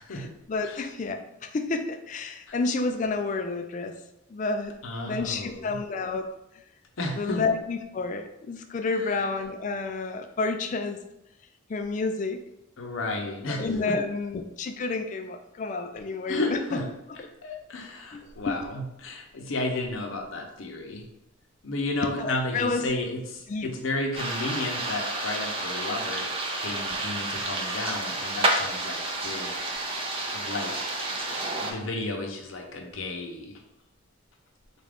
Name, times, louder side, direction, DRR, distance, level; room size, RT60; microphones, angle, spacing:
voice 1, 0.1-3.9 4.3-4.8 5.1-6.3 6.5-6.6 7.0-11.0 11.7-12.4 13.3-16.6 17.2-17.3 18.1-18.2 18.5-18.6 22.2-22.8 23.5-23.7, left 3 dB, 35° left, 7 dB, 0.3 m, -30 dB
voice 2, 4.8-5.8 7.0-7.4 9.0-9.1 12.8-13.9 16.3-16.8 17.4-21.0 21.6-26.3 26.6-29.5 29.8-30.0 30.3-30.9 31.5-33.6, left 2 dB, 75° left, 3 dB, 0.7 m, -33 dB
sound 1, 24.1-31.7, right 2 dB, 25° right, 0.4 m, -30 dB
4.1 x 2.5 x 3.5 m, 0.86 s
head